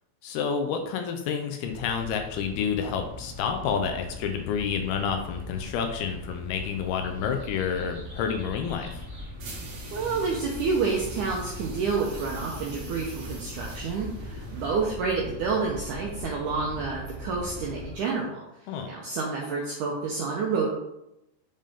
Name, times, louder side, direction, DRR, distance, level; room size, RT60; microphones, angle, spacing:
voice 1, 0.2-9.0 18.7-18.9, left 7 dB, 80° left, 5 dB, 2.4 m, -29 dB
sound 1, 1.6-18.0, left 1 dB, 30° right, 1.5 m, -40 dB
sound 2, 9.4-15.0, right 2 dB, 45° right, 2.3 m, -44 dB
voice 2, 9.9-18.4 18.9-20.7, right 4 dB, 80° right, -2 dB, 1.8 m, -29 dB
7.4 x 5.2 x 3.7 m, 0.85 s
omnidirectional pair, 4.8 m